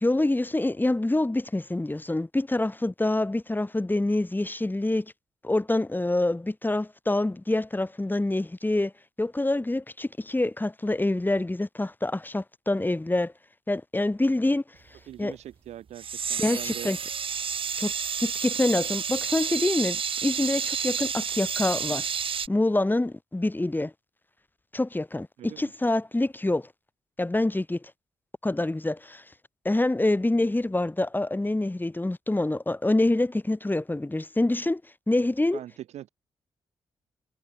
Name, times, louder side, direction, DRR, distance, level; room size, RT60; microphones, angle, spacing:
voice 1, 0.0-5.1 5.4-8.9 9.2-13.3 13.7-14.6 15.2-15.3 16.4-17.0 17.8-17.9 18.2-22.1 22.5-23.9 24.7-26.7 27.2-27.9 28.4-29.2 29.6-34.8 35.1-35.6, left 2 dB, 15° left, 3.0 m, -26 dB
voice 2, 15.0-16.9 25.4-25.7 35.5-36.1, right 12 dB, 75° right, 6.9 m, -42 dB
sound 1, 16.0-22.5, right 7 dB, 50° right, 1.1 m, -30 dB
hypercardioid pair, 40°, 11 cm